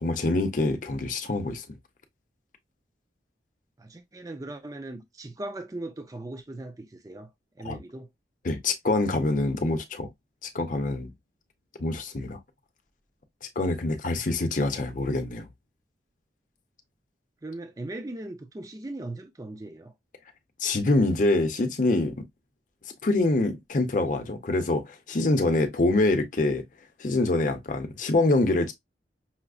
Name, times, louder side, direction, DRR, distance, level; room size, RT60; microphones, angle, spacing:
voice 1, 0.0-1.6 7.6-7.8 8.4-10.1 10.5-11.1 11.8-12.4 13.6-15.5 20.6-22.2 23.0-26.6 27.0-28.7, left 2 dB, 45° left, 0.7 m, -25 dB
voice 2, 3.8-7.3 7.6-8.1 14.2-14.3 17.4-19.9, right 2 dB, 20° right, 0.4 m, -39 dB
5.6 x 2.0 x 2.4 m
head